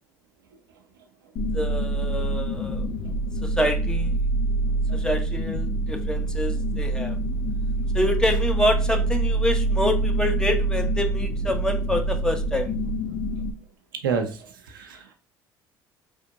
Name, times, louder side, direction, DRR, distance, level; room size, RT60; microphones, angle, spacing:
sound 1, 1.4-13.5, right 2 dB, 50° left, 0.5 m, -25 dB
voice 1, 1.5-2.9 3.4-4.1 4.9-7.2 7.9-12.7, left 1 dB, 5° left, 5 dB, 0.8 m, -27 dB
voice 2, 14.0-15.1, right 6 dB, 85° right, 5 dB, 0.6 m, -29 dB
4.3 x 3.2 x 2.6 m, 0.35 s
hypercardioid pair, 60°, 11 cm